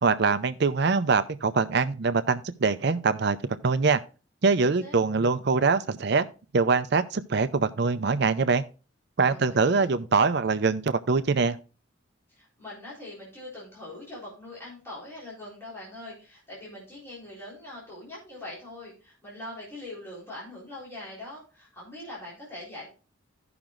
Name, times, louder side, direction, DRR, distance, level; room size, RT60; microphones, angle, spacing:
voice 1, 0.0-3.4 3.6-4.0 4.4-6.2 6.5-8.6 9.2-11.6, right 4 dB, 55° right, 0.5 m, -23 dB
voice 2, 4.6-5.0 9.3-9.9 12.3-22.9, left 1 dB, 10° left, 3.7 m, -42 dB
16.0 x 5.9 x 2.5 m
head